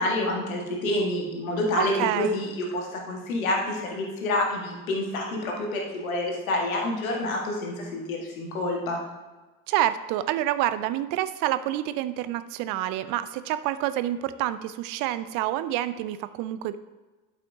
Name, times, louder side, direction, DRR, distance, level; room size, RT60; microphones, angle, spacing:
voice 1, 0.0-9.0, left 1 dB, 75° left, 0 dB, 1.6 m, -28 dB
voice 2, 1.7-2.4 9.7-16.8, right 13 dB, 50° right, 13 dB, 0.5 m, -28 dB
11.5 x 5.8 x 2.7 m, 1.2 s
figure-of-eight pair, 55°, 42 cm